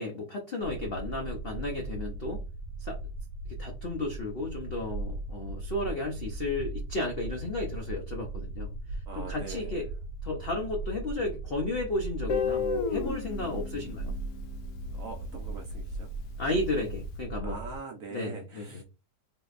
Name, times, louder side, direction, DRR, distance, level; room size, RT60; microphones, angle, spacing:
voice 1, 0.0-2.4 2.8-3.0 3.5-9.9 10.2-14.1 16.4-17.6 18.1-18.8, left 2 dB, 90° left, 1 dB, 0.5 m, -33 dB
sound 1, 0.6-17.8, right 2 dB, 90° right, 1.4 m, -38 dB
voice 2, 9.1-9.9 14.9-16.1 17.4-18.8, right 4 dB, 70° right, 3 dB, 0.8 m, -42 dB
Guitar, 12.3-15.2, left 5 dB, 70° left, 0.9 m, -33 dB
3.7 x 2.7 x 2.4 m, 0.31 s
omnidirectional pair, 2.0 m